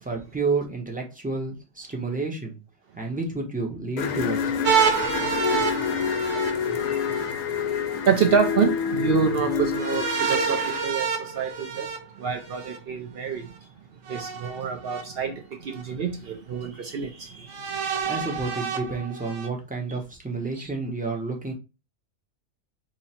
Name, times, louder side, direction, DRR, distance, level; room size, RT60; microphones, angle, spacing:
voice 1, 0.0-2.5 3.0-4.6 18.0-21.5, right 3 dB, 10° right, 0.6 m, -30 dB
sound 1, 4.0-10.8, left 7 dB, 80° left, 1.0 m, -27 dB
sound 2, 4.6-7.3 9.7-12.8 14.1-15.0 15.8-15.9 17.5-19.5, right 6 dB, 80° right, 1.1 m, -28 dB
voice 2, 6.6-13.7 14.1-17.9 20.6-20.7, right 6 dB, 60° right, 0.6 m, -28 dB
3.1 x 2.5 x 4.1 m
omnidirectional pair, 1.4 m